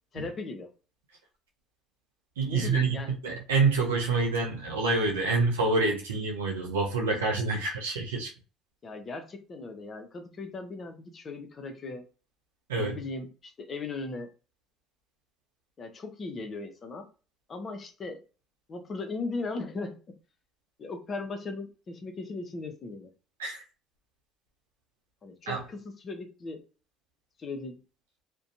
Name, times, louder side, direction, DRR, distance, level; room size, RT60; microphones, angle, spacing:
voice 1, 0.1-0.7 2.4-3.2 7.1-7.4 8.8-12.1 12.8-14.3 15.8-17.1 17.5-18.2 18.7-20.2 20.8-23.1 25.2-26.6 27.4-27.8, left 3 dB, 40° left, 0.7 m, -38 dB
voice 2, 2.4-8.3 12.7-13.0 23.4-23.6 25.5-25.6, right 3 dB, 90° right, 0.6 m, -27 dB
2.6 x 2.2 x 2.5 m
hypercardioid pair, 65°, 0 cm